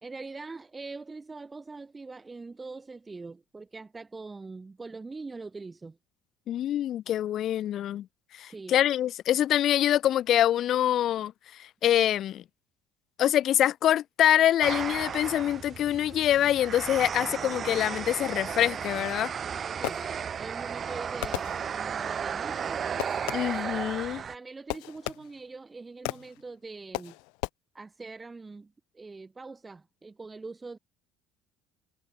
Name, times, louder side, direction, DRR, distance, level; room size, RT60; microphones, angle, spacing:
voice 1, 0.0-6.0 8.4-8.8 19.8-20.0 20.4-22.9 24.3-27.2 27.7-30.8, right 3 dB, 15° right, 2.7 m, -43 dB
voice 2, 6.5-8.1 8.4-11.3 11.6-12.4 13.2-19.3 23.3-24.2, left 11 dB, 50° left, 0.4 m, -25 dB
sound 1, 14.6-24.4, right 7 dB, 35° right, 1.6 m, -34 dB
Fireworks, 19.3-20.5 21.2-22.1 23.0-23.7 24.7-25.6 26.1-26.5 26.9-27.5, left 33 dB, 90° left, 1.6 m, -36 dB
cardioid pair, 125°, 0 cm